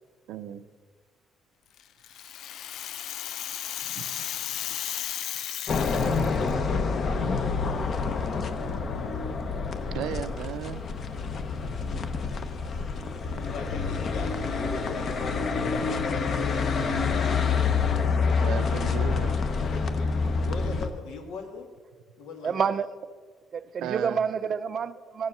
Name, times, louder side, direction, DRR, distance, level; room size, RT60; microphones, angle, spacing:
voice 1, 0.3-0.6 3.8-4.2 4.7-4.8 9.9-10.8 18.4-19.4 23.8-24.2, right 10 dB, 90° right, 10 dB, 0.5 m, -35 dB
Rattle (instrument), 1.8-6.5, left 11 dB, 60° left, 0.3 m, -35 dB
sound 1, 5.7-20.9, left 5 dB, 35° left, 0.8 m, -27 dB
voice 2, 6.6-8.1 9.3-9.4 10.5-11.5 13.5-16.5 19.7-21.7 22.2-22.7, left 4 dB, 85° left, 5 dB, 1.8 m, -41 dB
voice 3, 22.4-22.9 23.5-25.3, right 6 dB, 35° right, 14 dB, 0.4 m, -28 dB
15.5 x 7.3 x 6.5 m, 1.5 s
cardioid pair, 170°, 0 cm